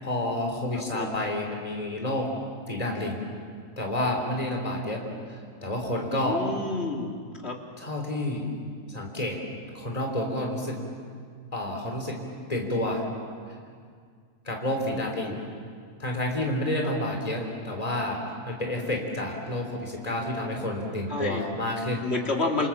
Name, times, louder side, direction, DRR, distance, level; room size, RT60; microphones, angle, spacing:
voice 1, 0.0-2.3 2.7-3.2 3.8-5.0 5.3-6.4 7.8-8.5 8.9-9.4 9.7-10.8 11.5-12.2 12.5-13.0 14.5-15.4 16.0-22.0, left 1 dB, 25° left, 1 dB, 3.7 m, -29 dB
voice 2, 0.7-1.1 6.1-7.1 7.4-7.6 15.2-15.4 16.8-16.9 21.1-21.4 22.0-22.7, left 3 dB, 45° left, 0 dB, 3.2 m, -29 dB
28.0 x 28.0 x 7.3 m, 2.1 s
omnidirectional pair, 1.5 m